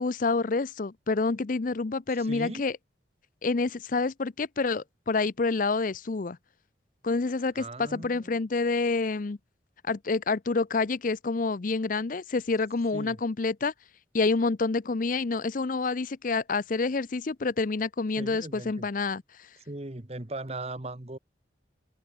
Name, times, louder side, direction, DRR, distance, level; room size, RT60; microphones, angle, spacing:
voice 1, 0.0-2.8 3.4-6.4 7.0-9.4 9.8-13.7 14.1-19.5, left 3 dB, 45° left, 0.5 m, -28 dB
voice 2, 2.2-2.6 7.5-8.4 12.9-13.2 18.2-18.9 19.7-21.2, right 2 dB, 35° right, 1.3 m, -38 dB
head